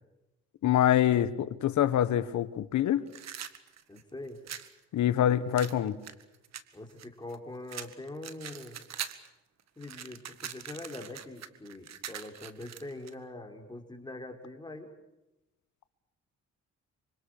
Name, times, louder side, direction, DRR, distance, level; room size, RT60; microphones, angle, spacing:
voice 1, 0.6-3.1 4.9-6.0, left 11 dB, 70° left, 1.5 m, -25 dB
sound 1, 3.1-4.7 5.6-7.4 7.7-9.3 9.6-13.1, right 9 dB, 60° right, 1.9 m, -42 dB
voice 2, 3.9-4.4 6.7-8.8 9.8-14.9, left 2 dB, 15° left, 4.8 m, -43 dB
26.0 x 25.5 x 6.7 m
cardioid pair, 90°, 30 cm